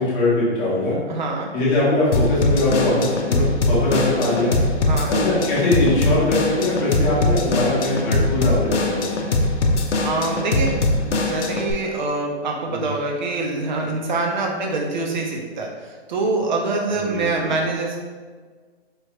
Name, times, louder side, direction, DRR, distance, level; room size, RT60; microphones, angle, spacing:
voice 1, 0.0-1.0 1.5-4.6 5.1-9.3 12.7-12.9 17.0-17.5, left 2 dB, 15° left, -7 dB, 1.0 m, -21 dB
voice 2, 1.1-1.5 4.8-5.1 10.0-10.7 11.0-18.0, right 3 dB, 40° right, 1 dB, 0.7 m, -25 dB
Drum kit / Drum, 2.1-11.7, left 2 dB, 90° left, 0.8 m, -21 dB
4.7 x 3.1 x 3.0 m, 1.5 s
hypercardioid pair, 160°, 34 cm